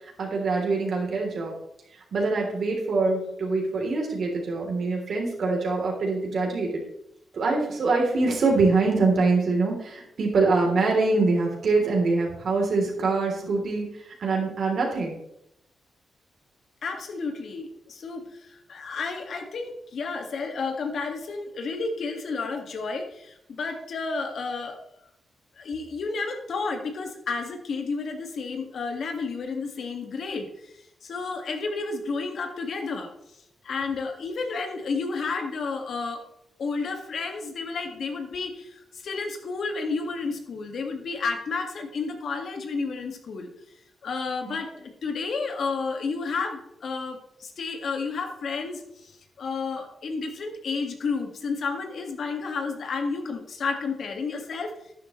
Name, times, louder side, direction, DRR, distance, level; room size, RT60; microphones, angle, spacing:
voice 1, 0.2-1.5 2.1-6.8 7.3-15.2 44.4-44.6, right 3 dB, 65° right, 0 dB, 3.2 m, -24 dB
voice 2, 16.8-24.8 25.6-30.7 31.0-33.1 33.6-36.2 36.6-43.5 44.0-54.7, left 4 dB, 70° left, 4 dB, 1.8 m, -31 dB
11.5 x 9.9 x 3.2 m, 0.78 s
cardioid pair, 80°, 0 cm